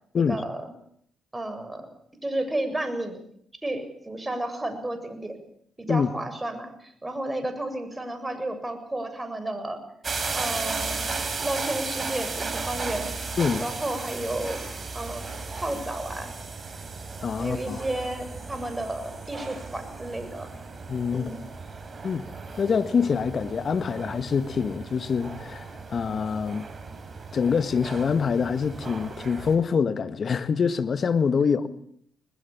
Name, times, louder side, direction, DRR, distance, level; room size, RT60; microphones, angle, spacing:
voice 1, 0.3-0.7 1.3-1.9 2.2-3.2 3.6-5.4 5.8-9.8 10.3-13.2 13.6-14.6 14.9-16.3 17.4-20.5 21.1-21.5 31.4-31.7, right 1 dB, 20° right, 7.4 m, -32 dB
sound 1, 10.0-29.6, right 4 dB, 45° right, 5.2 m, -35 dB
voice 2, 17.2-17.8 20.9-21.3 22.0-22.3 22.6-26.7 27.3-31.7, left 6 dB, 55° left, 1.7 m, -25 dB
21.0 x 21.0 x 8.7 m
supercardioid pair, 45°, 0 cm